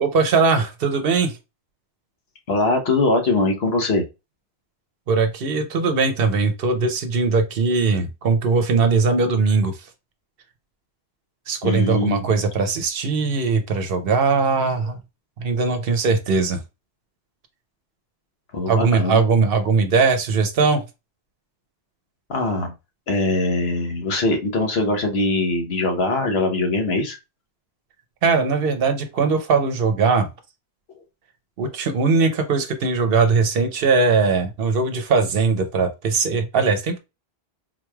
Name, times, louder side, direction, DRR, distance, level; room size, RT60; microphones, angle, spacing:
voice 1, 0.0-1.4 5.1-9.8 11.5-15.0 15.4-16.6 18.7-20.8 28.2-30.3 31.6-37.0, right 4 dB, 65° right, 0.8 m, -20 dB
voice 2, 2.5-4.0 11.6-12.3 18.5-19.3 22.3-22.7 23.1-27.2, left 2 dB, 75° left, 1.2 m, -22 dB
4.0 x 3.1 x 2.3 m
omnidirectional pair, 1.1 m